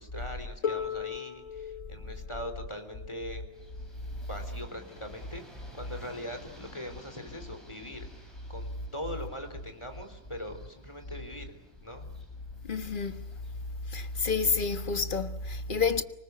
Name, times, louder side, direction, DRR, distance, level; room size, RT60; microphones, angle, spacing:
voice 1, 0.0-3.4 4.2-5.4 5.7-11.6 11.8-12.1, left 1 dB, 20° left, 3.7 m, -41 dB
Harp, 0.6-6.4 7.5-7.6, left 8 dB, 85° left, 1.9 m, -40 dB
sound 1, 3.5-14.8, equal, ahead, 8.0 m, -55 dB
voice 2, 12.7-13.2 13.9-16.0, left 4 dB, 45° left, 1.5 m, -29 dB
26.0 x 19.5 x 9.4 m
omnidirectional pair, 1.3 m